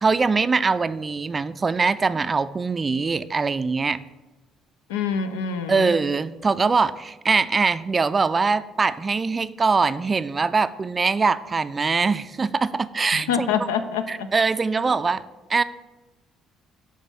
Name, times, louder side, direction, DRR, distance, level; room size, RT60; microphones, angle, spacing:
voice 1, 0.0-4.0 5.7-13.5 14.1-15.2 15.5-15.6, right 4 dB, 35° right, 14 dB, 0.3 m, -22 dB
voice 2, 4.9-5.9 13.1-14.3, left 7 dB, 90° left, 10 dB, 0.4 m, -26 dB
6.7 x 3.2 x 5.6 m, 1.1 s
hypercardioid pair, 60°, 0 cm